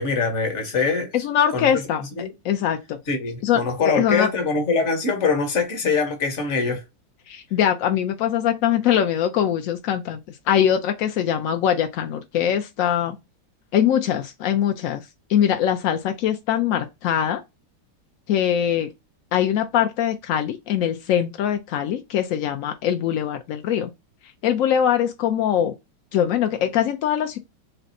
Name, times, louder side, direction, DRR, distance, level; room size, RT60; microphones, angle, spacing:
voice 1, 0.0-1.1 1.5-1.8 2.2-2.3 3.1-6.8, left 4 dB, 45° left, 1.3 m, -23 dB
voice 2, 1.1-2.0 2.4-3.0 3.4-4.3 7.3-13.2 13.7-15.0 15.3-17.4 18.3-18.9 19.3-23.9 24.4-25.7 26.1-27.4, left 9 dB, 75° left, 0.7 m, -22 dB
3.3 x 2.7 x 4.0 m
omnidirectional pair, 1.9 m